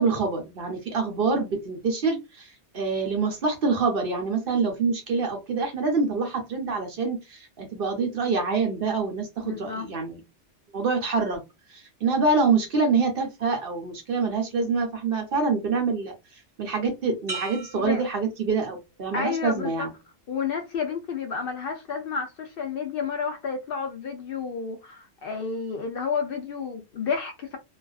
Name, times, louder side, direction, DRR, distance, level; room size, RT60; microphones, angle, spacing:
voice 1, 0.0-10.2 10.7-11.4 11.7-16.1 16.6-19.9, right 4 dB, 55° right, 0.8 m, -26 dB
voice 2, 9.4-9.9 17.8-18.0 19.1-19.9 20.3-27.6, left 5 dB, 60° left, 0.7 m, -30 dB
sound 1, 17.3-19.1 19.6-20.0, right 4 dB, 20° right, 1.1 m, -39 dB
2.5 x 2.3 x 2.3 m
omnidirectional pair, 1.2 m